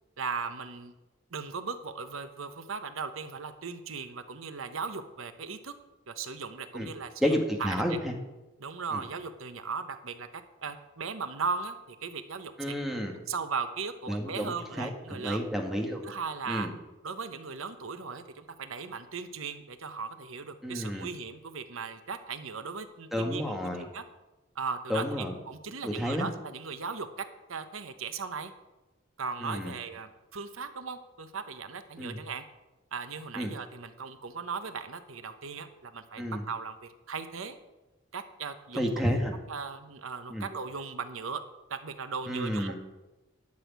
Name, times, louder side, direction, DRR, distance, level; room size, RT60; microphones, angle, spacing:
voice 1, 0.2-0.9 1.3-5.7 6.1-7.3 7.6-8.0 8.6-12.8 13.3-15.4 16.0-16.7 17.0-23.4 23.8-24.0 24.5-28.5 29.2-32.4 32.9-37.6 38.1-39.2 39.5-41.4 41.7-42.7, right 5 dB, 90° right, 10 dB, 1.0 m, -37 dB
voice 2, 7.2-8.1 8.9-9.0 12.6-13.1 14.1-16.1 16.5-16.7 20.6-21.1 23.1-23.9 24.9-25.3 25.8-26.3 29.4-29.7 32.0-32.2 33.3-33.5 36.2-36.4 38.7-39.3 40.3-40.5 42.3-42.7, equal, ahead, 1 dB, 1.7 m, -31 dB
11.5 x 6.5 x 9.4 m, 1.1 s
head